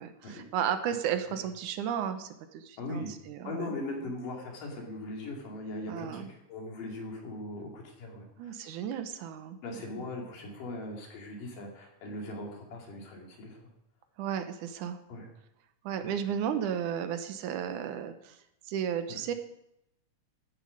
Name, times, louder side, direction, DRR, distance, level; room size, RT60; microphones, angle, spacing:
voice 1, 0.0-3.8 5.9-6.3 8.4-9.6 14.2-15.0 15.8-18.4 18.7-19.3, right 8 dB, 75° right, 9 dB, 2.3 m, -34 dB
voice 2, 2.8-3.1 3.4-8.6 9.6-13.6 15.1-15.3 16.0-16.1 19.1-19.2, left 2 dB, 85° left, 0 dB, 4.1 m, -39 dB
14.0 x 9.9 x 5.1 m, 0.82 s
omnidirectional pair, 3.7 m